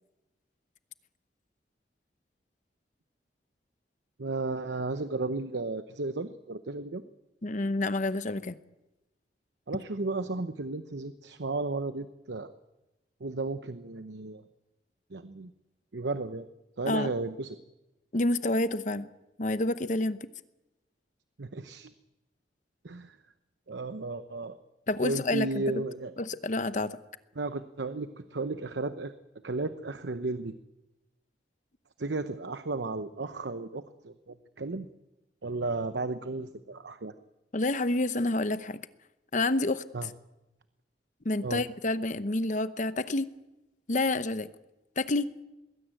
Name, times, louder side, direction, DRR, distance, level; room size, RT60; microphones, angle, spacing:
voice 1, 4.2-7.1 9.7-12.5 13.2-14.4 15.1-15.5 15.9-16.5 16.8-17.6 21.4-21.9 22.8-23.2 23.7-24.6 25.0-26.1 27.4-29.1 29.4-30.5 32.0-34.9 35.4-37.1 39.9-40.1 41.4-41.6, right 3 dB, 85° right, 11 dB, 0.9 m, -34 dB
voice 2, 7.4-8.5 16.9-17.1 18.1-19.1 19.4-20.2 24.9-25.6 26.2-27.0 37.5-38.8 39.3-39.8 41.2-43.3 43.9-44.5 45.0-45.3, left 2 dB, 45° left, 13 dB, 0.9 m, -28 dB
21.5 x 16.5 x 9.1 m, 1.0 s
head